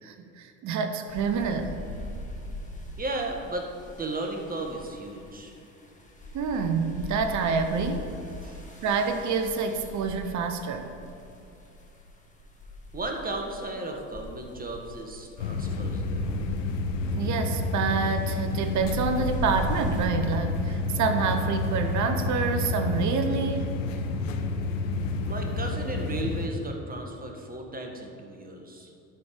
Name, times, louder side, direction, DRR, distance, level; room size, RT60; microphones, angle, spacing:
voice 1, 0.0-1.8 6.3-8.1 8.8-10.9 17.1-23.7, right 5 dB, 50° right, 6 dB, 0.9 m, -27 dB
sound 1, 1.1-20.1, left 1 dB, 20° left, 1.6 m, -41 dB
voice 2, 3.0-3.7 4.0-5.5 8.4-8.6 12.9-16.3 25.2-28.9, right 2 dB, 20° right, 2 dB, 1.5 m, -35 dB
sound 2, 15.4-26.5, left 3 dB, 85° left, 0.7 m, -29 dB
11.5 x 4.4 x 5.1 m, 2.7 s
hypercardioid pair, 65°, 38 cm